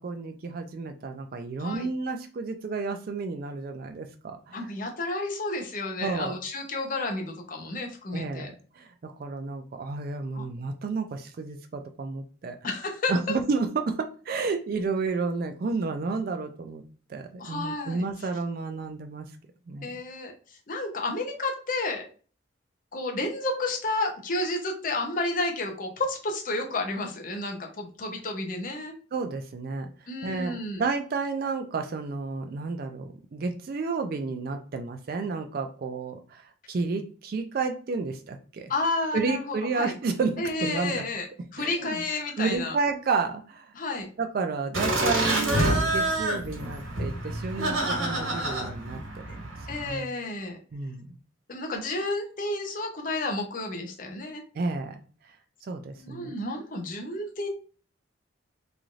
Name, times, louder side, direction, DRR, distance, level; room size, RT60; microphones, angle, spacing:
voice 1, 0.0-4.7 6.0-6.4 8.1-12.6 13.1-16.8 17.1-19.3 19.7-19.9 29.1-29.9 30.2-36.4 36.7-38.7 39.1-41.0 41.6-42.0 42.4-43.7 44.2-49.4 49.7-50.1 50.7-51.2 54.5-55.0 55.6-56.3, right 4 dB, 45° right, 7 dB, 0.3 m, -31 dB
voice 2, 4.5-8.5 10.3-10.4 12.6-13.1 17.4-18.1 19.8-20.3 20.7-22.1 22.9-28.9 30.1-30.8 38.7-39.9 40.4-41.3 41.5-42.8 43.7-44.1 49.7-50.6 51.5-54.4 56.0-57.5, left 2 dB, 40° left, 2 dB, 0.6 m, -31 dB
Laughter, 44.7-49.9, right 1 dB, 85° right, 1.3 m, -27 dB
3.1 x 2.5 x 2.4 m, 0.40 s
head